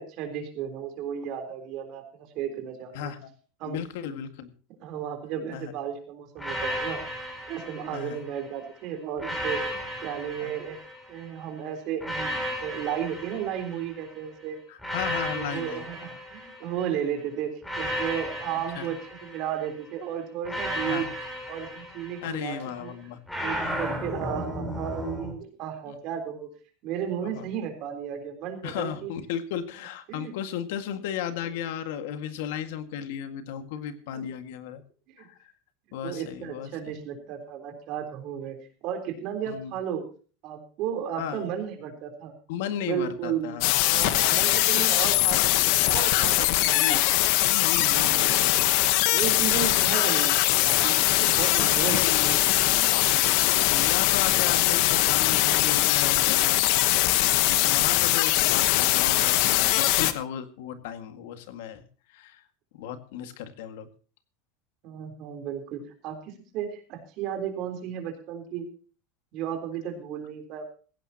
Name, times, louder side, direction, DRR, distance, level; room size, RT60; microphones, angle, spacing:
voice 1, 0.0-3.1 3.6-3.8 4.8-7.0 7.5-10.8 11.1-14.6 15.3-21.1 21.5-22.9 23.4-26.5 26.8-29.1 30.1-30.3 34.1-34.2 35.2-35.3 36.0-38.6 38.8-40.1 40.4-42.3 42.8-47.0 47.8-48.3 49.1-52.0 52.2-52.4 64.8-68.7 69.3-70.6, right 9 dB, 45° right, 5 dB, 3.7 m, -34 dB
voice 2, 2.9-3.3 3.6-4.5 5.5-5.7 7.9-8.2 10.4-10.5 14.7-15.9 18.8-18.9 20.9-21.1 22.2-23.2 25.9-26.0 27.2-27.5 28.6-34.8 35.2-35.5 35.9-36.7 39.5-39.7 41.2-41.5 42.5-43.8 46.8-47.0 47.4-48.7 51.5-52.4 53.4-56.7 57.0-62.4 62.7-63.9, left 9 dB, 75° left, 9 dB, 1.9 m, -35 dB
sound 1, 6.4-8.5 9.2-11.3 12.0-14.2 14.8-17.0 17.6-19.8 20.5-22.6 23.3-25.3, equal, 5° left, 4.1 m, -34 dB
sound 2, 43.6-60.1, left 16 dB, 60° left, 1.1 m, -22 dB
16.5 x 16.0 x 2.9 m, 0.38 s
supercardioid pair, 160°, 0 cm